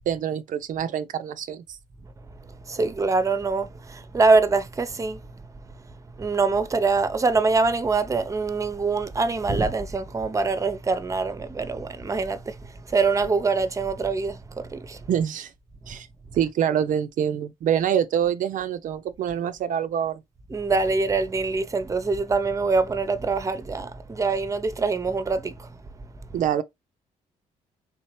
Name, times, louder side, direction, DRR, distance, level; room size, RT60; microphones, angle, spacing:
voice 1, 0.1-1.8 15.1-15.5 15.9-16.1 16.4-20.2 26.3-26.6, right 9 dB, 65° right, 0.4 m, -25 dB
voice 2, 2.7-5.2 6.2-12.5 12.9-15.0 20.5-25.7, right 4 dB, 20° right, 0.6 m, -24 dB
3.6 x 2.9 x 3.0 m
cardioid pair, 75°, 15 cm